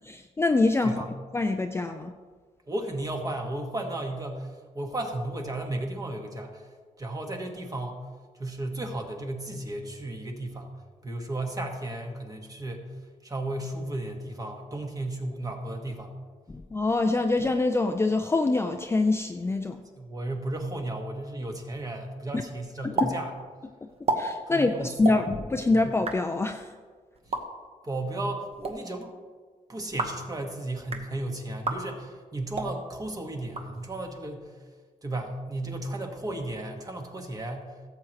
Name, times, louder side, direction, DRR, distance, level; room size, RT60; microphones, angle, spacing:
voice 1, 0.0-1.0 1.3-2.1 16.7-19.8 22.3-22.4 22.8-23.1 23.8-23.9 24.1-26.7, left 3 dB, 20° left, 6 dB, 0.4 m, -25 dB
voice 2, 2.7-6.7 7.0-8.0 8.4-10.7 11.0-16.2 20.0-23.3 24.5-25.0 25.7-25.8 27.3-27.4 27.8-29.1 29.7-34.6 35.0-37.8, right 1 dB, 25° right, 3 dB, 1.3 m, -34 dB
sound 1, 23.0-23.1 23.4-23.5 23.9-24.2 25.0-25.2 25.9-26.2 27.1-27.4 28.4-28.7 29.8-30.2 30.7-31.1 31.6-31.8 32.5-32.7 33.4-34.1, right 3 dB, 45° right, 1.0 m, -31 dB
16.0 x 7.7 x 3.0 m, 1.6 s
wide cardioid pair, 130°, 14 cm